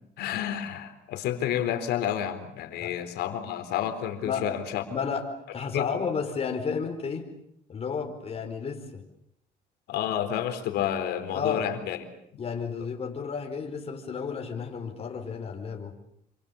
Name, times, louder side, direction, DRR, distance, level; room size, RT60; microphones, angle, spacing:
voice 1, 0.2-4.8 5.7-6.0 9.9-12.0, left 10 dB, 80° left, 8 dB, 4.1 m, -30 dB
voice 2, 4.9-7.3 7.7-9.0 11.3-11.6 12.4-15.9, left 6 dB, 35° left, 3 dB, 4.8 m, -32 dB
28.0 x 26.5 x 7.2 m, 0.74 s
cardioid pair, 110°, 17 cm